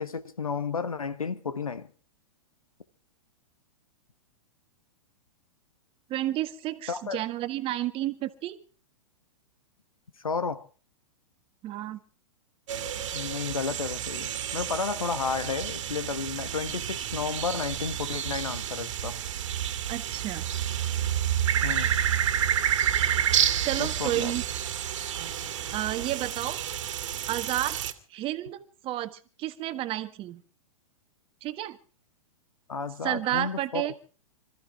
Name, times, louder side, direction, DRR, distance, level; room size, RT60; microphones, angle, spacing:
voice 1, 0.0-1.9 6.9-7.2 10.2-10.6 13.1-19.2 21.6-22.0 23.8-24.3 32.7-33.8, left 5 dB, 85° left, 1.4 m, -32 dB
voice 2, 6.1-8.6 11.6-12.0 19.9-20.4 23.6-24.4 25.0-25.1 25.7-26.6 27.3-27.8 28.1-30.4 31.4-31.8 33.0-33.9, right 14 dB, 30° right, 1.5 m, -31 dB
sound 1, 12.7-27.9, right 10 dB, 60° right, 2.1 m, -29 dB
26.5 x 14.0 x 3.6 m
hypercardioid pair, 110°, 17 cm